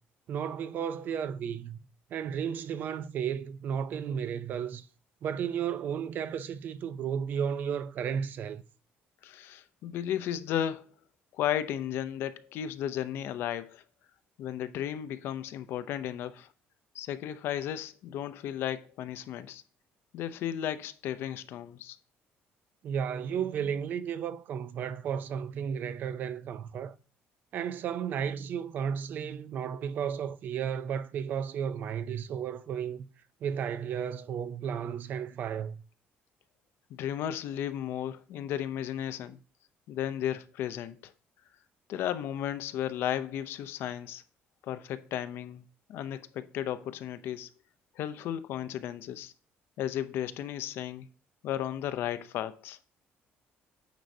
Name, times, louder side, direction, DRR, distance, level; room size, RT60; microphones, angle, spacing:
voice 1, 0.3-1.8 2.1-4.9 5.2-8.6 22.8-27.0 27.5-33.1 33.4-35.8, right 8 dB, 45° right, 0.4 m, -33 dB
voice 2, 9.2-10.9 11.3-13.8 14.4-16.5 16.9-19.6 20.1-22.0 36.9-39.4 39.9-41.1 41.9-44.2 44.6-45.6 45.9-47.5 48.0-49.3 49.8-51.1 51.4-52.8, left 10 dB, 65° left, 0.5 m, -34 dB
9.1 x 5.1 x 2.7 m
cardioid pair, 165°, 4 cm